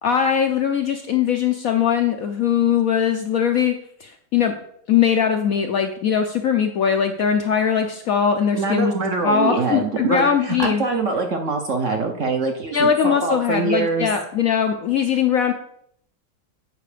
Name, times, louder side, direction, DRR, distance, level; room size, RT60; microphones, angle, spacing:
voice 1, 0.0-3.7 4.0-4.5 4.9-8.9 9.2-10.8 12.7-15.5, left 7 dB, 65° left, 5 dB, 0.9 m, -20 dB
voice 2, 8.5-14.1, right 4 dB, 50° right, 3 dB, 0.9 m, -24 dB
8.4 x 5.3 x 5.0 m, 0.68 s
omnidirectional pair, 2.0 m